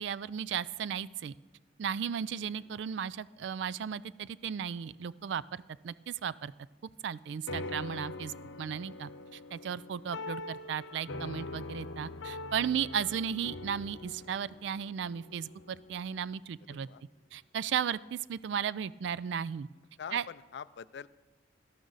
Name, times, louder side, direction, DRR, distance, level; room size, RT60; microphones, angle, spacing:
voice 1, 0.0-1.3 1.8-6.5 7.0-16.9 17.3-19.7 20.1-20.2, right 8 dB, 70° right, 19 dB, 0.3 m, -35 dB
voice 2, 2.4-2.7 7.6-7.8 10.0-10.3 16.7-17.0 20.0-21.1, left 7 dB, 60° left, 14 dB, 0.3 m, -46 dB
sound 1, 7.5-16.2, left 2 dB, 80° left, 0.8 m, -43 dB
18.0 x 12.0 x 4.0 m, 1.3 s
head